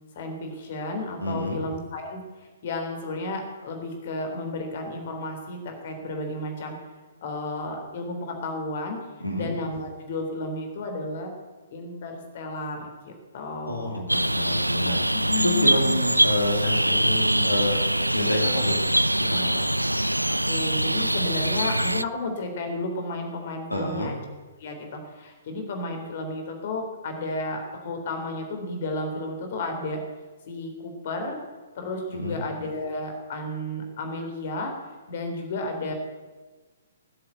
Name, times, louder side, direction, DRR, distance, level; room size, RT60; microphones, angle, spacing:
voice 1, 0.2-6.7 7.2-9.0 9.3-11.3 11.7-14.0 15.1-16.0 20.3-24.2 24.6-30.0 30.5-31.4 31.8-34.8 35.1-35.9, left 2 dB, 45° left, 4 dB, 3.5 m, -32 dB
voice 2, 1.2-1.6 9.2-9.5 13.7-15.0 15.3-17.8 18.1-18.8 19.2-19.6 23.7-24.1 32.1-32.4, left 1 dB, 85° left, 1 dB, 2.7 m, -28 dB
sound 1, 14.1-22.0, right 1 dB, 85° right, 0.4 m, -23 dB
19.0 x 7.9 x 8.1 m, 1.3 s
figure-of-eight pair, 120°, 0 cm